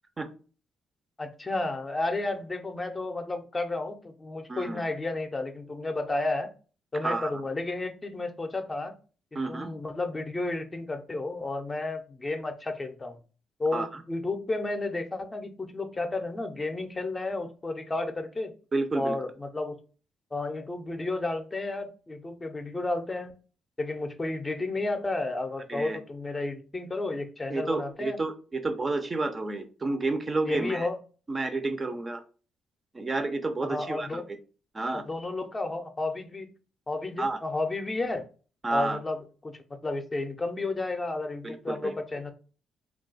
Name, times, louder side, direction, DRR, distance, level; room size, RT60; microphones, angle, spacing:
voice 1, 1.2-6.5 6.9-9.0 9.3-13.2 13.6-18.5 18.9-19.7 20.3-23.3 23.8-28.2 30.5-31.0 33.6-34.2 34.9-36.5 36.9-38.2 38.7-42.3, left 2 dB, 25° left, 6 dB, 0.5 m, -32 dB
voice 2, 4.5-4.8 7.0-7.3 9.3-9.7 13.7-13.9 18.7-19.2 25.7-26.0 27.5-30.9 31.3-32.2 32.9-34.2 34.7-35.0 37.2-37.4 38.6-39.0 41.4-41.9, right 3 dB, 30° right, 8 dB, 0.5 m, -30 dB
2.3 x 2.2 x 3.9 m, 0.37 s
cardioid pair, 75°, 0 cm